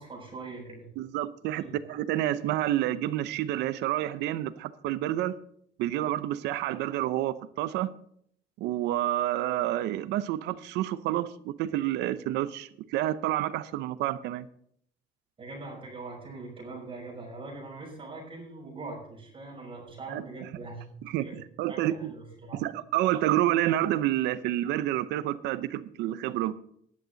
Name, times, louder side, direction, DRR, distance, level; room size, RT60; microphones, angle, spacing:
voice 1, 0.0-0.9 1.5-1.8 15.4-21.4 21.7-22.6, right 3 dB, 30° right, -2 dB, 6.0 m, -42 dB
voice 2, 1.0-5.4 5.8-7.9 8.6-14.5 20.1-20.5 21.0-22.1 22.5-26.5, right 13 dB, 85° right, 15 dB, 0.7 m, -29 dB
13.5 x 11.0 x 4.0 m, 0.67 s
cardioid pair, 110°, 17 cm